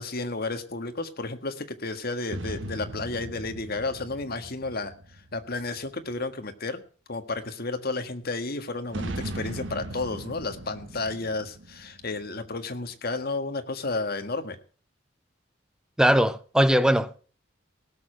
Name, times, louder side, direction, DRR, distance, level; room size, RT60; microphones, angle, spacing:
voice 1, 0.0-6.8 7.1-14.6, left 3 dB, 50° left, 1.6 m, -32 dB
sound 1, 2.3-6.0 8.9-12.7, right 1 dB, 70° right, 1.2 m, -38 dB
voice 2, 16.0-17.2, equal, 5° right, 0.6 m, -20 dB
18.0 x 6.8 x 6.3 m
head